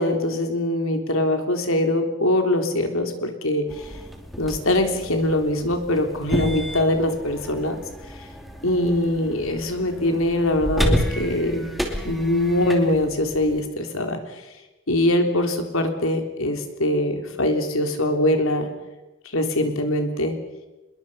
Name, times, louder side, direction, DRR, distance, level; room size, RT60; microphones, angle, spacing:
voice 1, 0.0-3.9 4.4-7.8 8.6-11.7 12.0-14.4 14.9-18.7 19.3-20.3, left 1 dB, 70° left, 5 dB, 3.6 m, -22 dB
sound 1, 3.7-13.6, equal, ahead, 2.6 m, -31 dB
25.5 x 22.0 x 5.7 m, 1.1 s
head